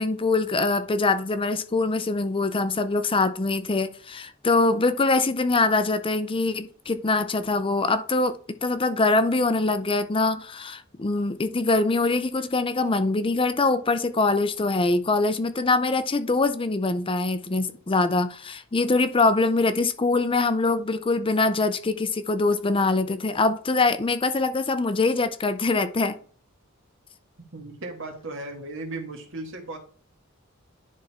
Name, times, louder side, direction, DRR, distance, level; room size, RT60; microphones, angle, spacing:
voice 1, 0.0-26.2, left 3 dB, 25° left, 0.6 m, -23 dB
voice 2, 27.5-29.8, right 2 dB, 65° right, 1.7 m, -36 dB
10.5 x 3.6 x 4.2 m
head